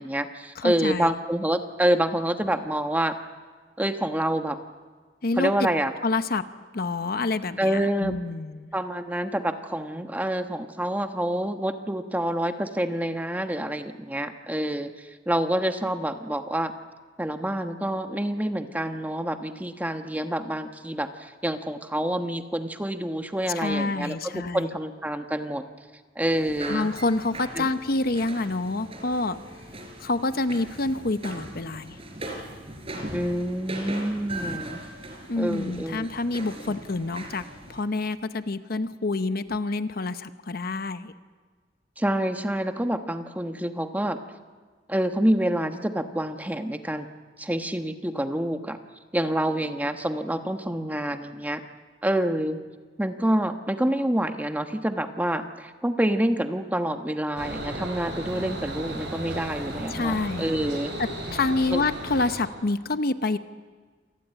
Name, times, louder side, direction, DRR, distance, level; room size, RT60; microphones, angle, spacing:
voice 1, 0.0-3.1 3.8-4.6 5.4-5.9 7.6-8.1 8.7-16.7 17.2-25.6 26.1-26.9 27.5-27.7 33.1-34.8 35.4-36.1 36.4-36.7 42.0-44.2 44.9-47.1 47.4-48.8 49.1-51.6 52.0-52.6 53.0-60.9 61.7-61.8, right 1 dB, 10° right, 7 dB, 1.2 m, -27 dB
voice 2, 0.6-1.1 5.2-5.7 6.0-6.5 6.7-8.7 23.5-24.7 26.7-29.4 30.0-32.0 35.3-37.4 37.7-41.1 59.9-60.5 61.0-63.4, left 3 dB, 55° left, 11 dB, 0.9 m, -27 dB
sound 1, 26.2-37.8, right 1 dB, 35° right, 4.7 m, -39 dB
sound 2, 57.4-62.4, right 1 dB, 75° right, 7.2 m, -35 dB
27.5 x 19.0 x 9.0 m, 1.4 s
head